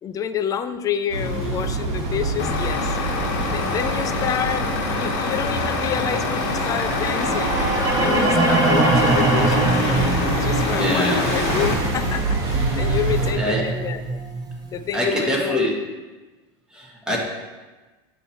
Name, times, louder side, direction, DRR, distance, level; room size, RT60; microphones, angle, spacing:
voice 1, 0.0-3.0 3.4-7.7 8.0-9.7 10.4-14.2 14.7-15.7, left 8 dB, 25° left, 11 dB, 0.3 m, -28 dB
sound 1, 1.1-13.3, right 2 dB, 55° right, 1.7 m, -26 dB
Truck, 2.4-11.7, left 4 dB, 60° left, 1.2 m, -26 dB
sound 2, 6.9-15.0, right 2 dB, 25° right, 0.9 m, -23 dB
voice 2, 10.7-11.2 13.4-13.6 14.9-15.7 16.7-17.2, left 1 dB, 5° right, -3 dB, 1.4 m, -23 dB
9.0 x 3.1 x 4.2 m, 1.2 s
supercardioid pair, 135°, 14 cm